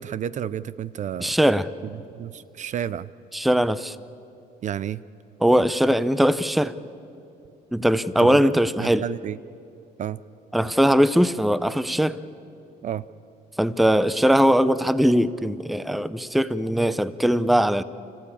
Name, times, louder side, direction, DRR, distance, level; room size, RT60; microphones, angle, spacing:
voice 1, 0.0-1.4 1.8-3.1 4.6-5.0 8.2-8.5 8.8-9.4 10.0-10.2 12.8-13.1, right 10 dB, 45° right, 0.5 m, -31 dB
voice 2, 1.2-1.7 3.3-4.0 5.4-6.7 7.7-9.0 10.5-12.2 13.6-17.8, equal, ahead, 0.5 m, -20 dB
29.5 x 15.0 x 8.6 m
cardioid pair, 110°, 17 cm